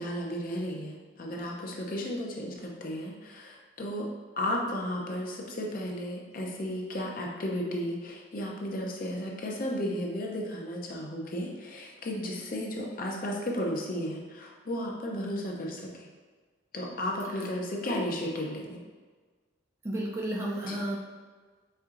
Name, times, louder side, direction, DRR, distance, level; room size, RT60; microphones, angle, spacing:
voice 1, 0.0-4.1 4.4-16.1 16.7-18.8 20.6-20.8, left 1 dB, 45° left, -1 dB, 0.6 m, -34 dB
voice 2, 19.8-21.0, right 1 dB, 15° right, -3 dB, 0.4 m, -32 dB
4.4 x 3.5 x 2.5 m, 1.4 s
head